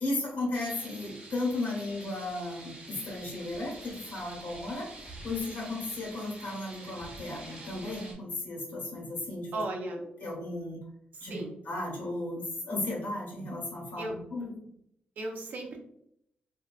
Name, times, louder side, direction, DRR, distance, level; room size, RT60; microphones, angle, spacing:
voice 1, 0.0-9.6 10.2-10.8 11.2-14.5, left 2 dB, 70° left, -3 dB, 1.4 m, -35 dB
sound 1, 0.5-8.1, right 2 dB, 35° right, 0.9 m, -47 dB
voice 2, 9.5-10.0 11.1-11.5 14.0-14.2 15.2-15.8, right 2 dB, 55° right, 2 dB, 0.6 m, -36 dB
3.5 x 2.6 x 2.3 m, 0.73 s
wide cardioid pair, 180°, 3 cm